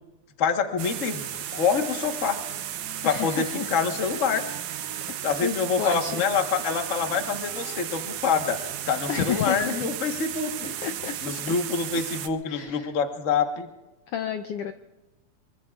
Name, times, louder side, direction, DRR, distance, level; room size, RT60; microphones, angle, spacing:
voice 1, 0.4-2.4 3.0-4.4 5.2-10.7 11.2-13.7, left 6 dB, 60° left, 5 dB, 0.8 m, -26 dB
sound 1, 0.8-12.3, right 11 dB, 90° right, 2.4 m, -34 dB
Wind instrument woodwind instrument, 2.3-9.4, right 1 dB, ahead, 3.8 m, -49 dB
voice 2, 3.0-3.7 5.1-6.2 7.6-7.9 9.1-9.8 10.8-11.2 12.5-12.9 14.1-14.7, left 9 dB, 80° left, 8 dB, 1.3 m, -31 dB
25.0 x 23.5 x 2.4 m, 1.0 s
omnidirectional pair, 3.5 m